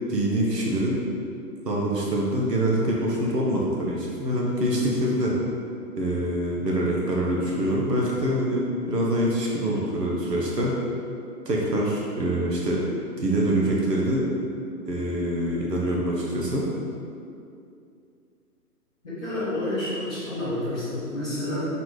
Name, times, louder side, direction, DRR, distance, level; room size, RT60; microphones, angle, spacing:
voice 1, 0.1-1.0 1.6-5.3 6.0-10.7 11.4-12.8 13.2-14.2 14.9-16.6, right 1 dB, 80° right, -4 dB, 1.6 m, -25 dB
voice 2, 19.0-21.7, left 1 dB, 5° left, -17 dB, 0.5 m, -29 dB
5.9 x 5.0 x 5.0 m, 2.5 s
hypercardioid pair, 150°, 48 cm